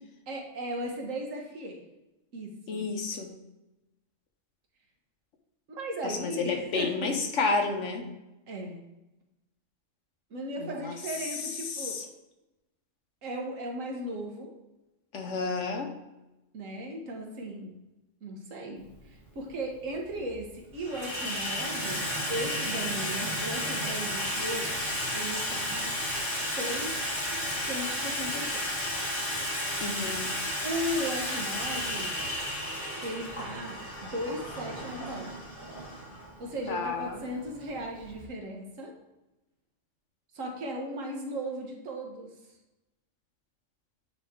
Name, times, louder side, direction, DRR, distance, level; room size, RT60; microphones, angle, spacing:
voice 1, 0.3-1.8 2.3-2.9 5.7-7.1 8.5-8.8 10.3-12.0 13.2-14.5 16.5-17.7 18.2-24.7 25.1-25.9 26.6-27.0 27.6-28.6 30.6-32.1 33.0-35.4 36.4-38.9 40.3-42.3, right 1 dB, 85° right, 1 dB, 1.5 m, -36 dB
voice 2, 2.7-3.4 6.0-8.1 10.6-10.9 11.6-12.1 15.1-15.9 29.8-30.3 36.7-37.2, left 4 dB, 70° left, 4 dB, 1.2 m, -31 dB
Water tap faucet / Sink (filling or washing), 18.9-19.0 19.9-20.3 20.6-38.2, left 1 dB, 40° left, 1.9 m, -33 dB
9.2 x 3.2 x 3.6 m, 0.99 s
omnidirectional pair, 1.3 m